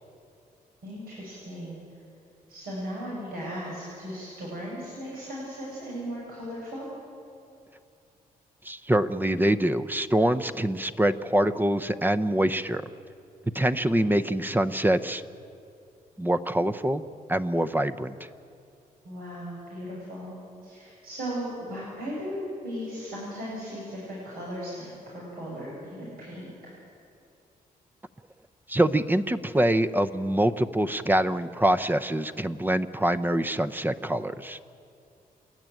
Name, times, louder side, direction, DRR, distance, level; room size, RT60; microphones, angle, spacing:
voice 1, 0.8-1.8 2.5-6.9 19.0-20.4 20.6-26.5, equal, 80° right, -6 dB, 7.1 m, -37 dB
voice 2, 8.6-12.9 13.5-15.2 16.2-17.0 17.3-18.2 28.7-34.6, right 1 dB, 10° right, 10 dB, 0.8 m, -25 dB
29.0 x 11.0 x 9.2 m, 2.6 s
cardioid pair, 80°, 15 cm